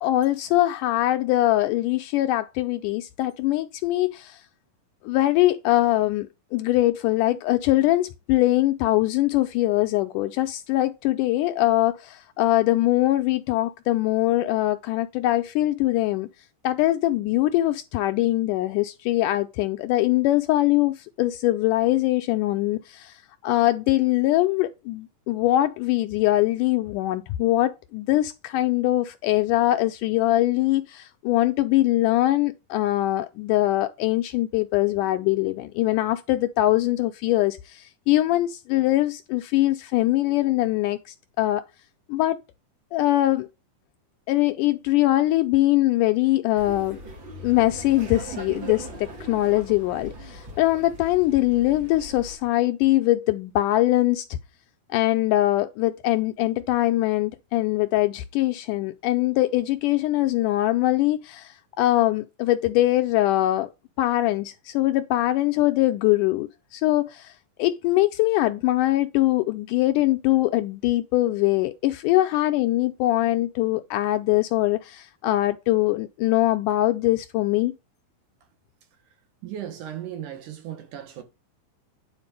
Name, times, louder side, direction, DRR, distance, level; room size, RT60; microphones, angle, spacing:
voice 1, 0.0-4.5 5.0-16.3 16.6-41.6 42.1-42.4 42.9-43.5 44.3-47.0 47.4-54.4 54.9-63.7 64.0-77.7, left 16 dB, 80° left, 1.9 m, -22 dB
Laughter, 46.6-52.3, right 1 dB, 40° right, 2.4 m, -39 dB
voice 2, 79.4-81.2, right 10 dB, 70° right, 2.8 m, -36 dB
9.6 x 4.1 x 5.2 m
omnidirectional pair, 4.0 m